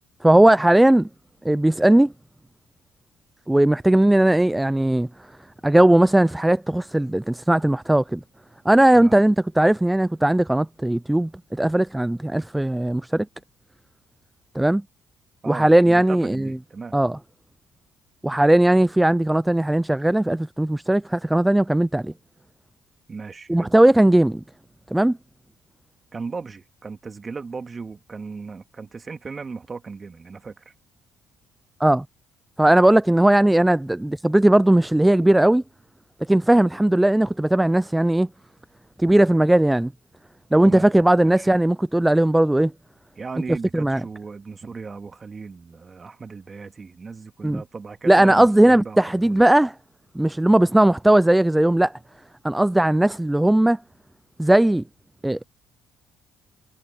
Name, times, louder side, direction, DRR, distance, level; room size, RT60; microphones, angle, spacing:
voice 1, 0.2-1.1 1.4-2.1 3.5-5.1 5.6-8.2 8.7-13.3 14.6-14.8 15.5-16.5 16.9-17.2 18.2-22.1 23.5-24.4 24.9-25.2 31.8-32.0 32.6-35.6 36.3-38.3 39.0-39.9 40.5-42.7 43.7-44.0 47.4-47.6 48.1-49.7 50.2-51.9 52.4-53.8 54.4-54.8 55.2-55.4, right 1 dB, 10° right, 0.3 m, -18 dB
voice 2, 15.4-17.0 23.1-23.7 26.1-30.7 40.6-40.9 41.2-41.5 43.2-49.4, right 4 dB, 35° right, 2.2 m, -36 dB
supercardioid pair, 75°, 0 cm